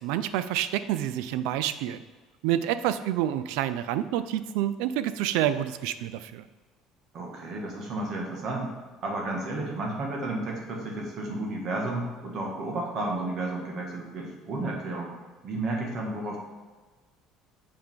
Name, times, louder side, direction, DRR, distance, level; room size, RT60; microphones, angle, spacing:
voice 1, 0.0-2.0 2.4-6.4, right 11 dB, 85° right, 13 dB, 0.4 m, -28 dB
voice 2, 7.1-8.7 9.0-15.1 15.4-16.4, right 2 dB, 40° right, -1 dB, 1.6 m, -32 dB
8.1 x 5.0 x 3.6 m, 1.3 s
cardioid pair, 160°, 0 cm